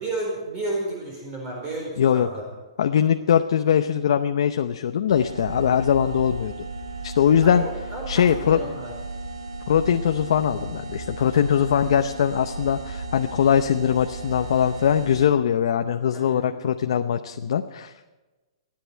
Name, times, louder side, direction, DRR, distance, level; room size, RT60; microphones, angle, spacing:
voice 1, 0.0-2.5 7.4-8.9 16.1-16.6, right 2 dB, 30° right, -2 dB, 4.3 m, -32 dB
voice 2, 2.0-2.3 2.8-6.7 7.0-7.6 8.1-8.6 9.7-18.1, left 8 dB, 65° left, 7 dB, 0.7 m, -21 dB
sound 1, 5.1-15.3, right 3 dB, 85° right, 3.1 m, -35 dB
29.0 x 10.5 x 4.6 m, 1.2 s
hypercardioid pair, 155°, 3 cm